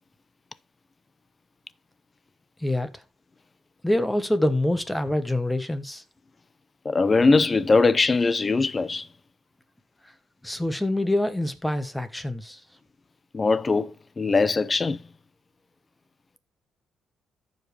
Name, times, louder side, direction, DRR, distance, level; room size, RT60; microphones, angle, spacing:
voice 1, 2.6-3.0 3.8-6.0 10.4-12.6, left 1 dB, 5° left, 1.2 m, -25 dB
voice 2, 6.8-9.1 13.3-15.0, left 3 dB, 30° left, 0.6 m, -21 dB
14.0 x 5.2 x 3.3 m
cardioid pair, 90°, 0 cm